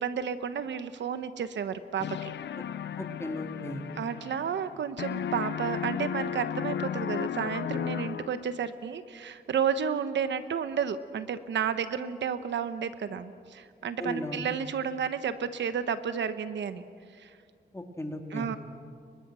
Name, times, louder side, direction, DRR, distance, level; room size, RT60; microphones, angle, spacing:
voice 1, 0.0-2.3 3.9-16.8 17.1-17.3 18.3-18.6, right 7 dB, 85° right, 11 dB, 1.1 m, -32 dB
sound 1, 2.0-4.7 5.0-8.6, left 9 dB, 80° left, 0.6 m, -34 dB
voice 2, 3.0-3.8 14.0-14.4 17.7-18.5, left 1 dB, 15° left, 3 dB, 2.9 m, -36 dB
29.5 x 23.0 x 6.3 m, 2.2 s
cardioid pair, 85°, 18 cm